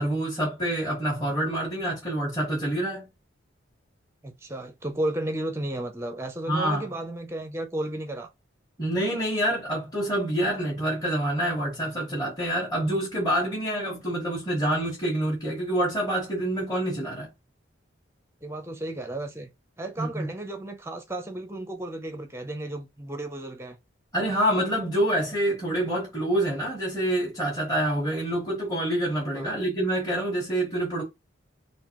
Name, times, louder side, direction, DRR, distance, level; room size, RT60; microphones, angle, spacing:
voice 1, 0.0-3.1 6.5-6.9 8.8-17.3 20.0-20.3 24.1-31.0, right 1 dB, 20° left, 1.4 m, -27 dB
voice 2, 4.2-8.3 18.4-19.5 19.8-23.8 29.3-29.5, right 1 dB, 15° right, 0.6 m, -33 dB
3.8 x 2.6 x 3.0 m
head